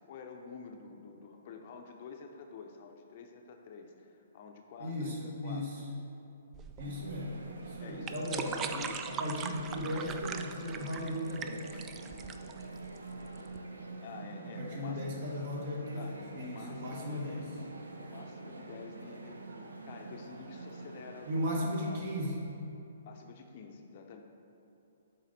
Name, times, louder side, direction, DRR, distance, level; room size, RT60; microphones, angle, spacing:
voice 1, 0.0-5.2 5.4-5.7 7.8-9.1 14.0-15.1 15.9-17.7 18.0-21.4 21.9-22.0 23.0-24.2, left 5 dB, 45° left, 4 dB, 0.6 m, -49 dB
voice 2, 4.8-5.8 6.8-8.6 9.0-11.9 14.6-17.4 21.2-22.4, left 1 dB, 50° right, -2 dB, 1.4 m, -36 dB
sound 1, 6.5-13.6, right 6 dB, 20° right, 0.3 m, -41 dB
sound 2, 6.8-21.5, right 3 dB, 80° right, 0.6 m, -46 dB
7.4 x 4.0 x 4.0 m, 2.8 s
figure-of-eight pair, 125°, 0 cm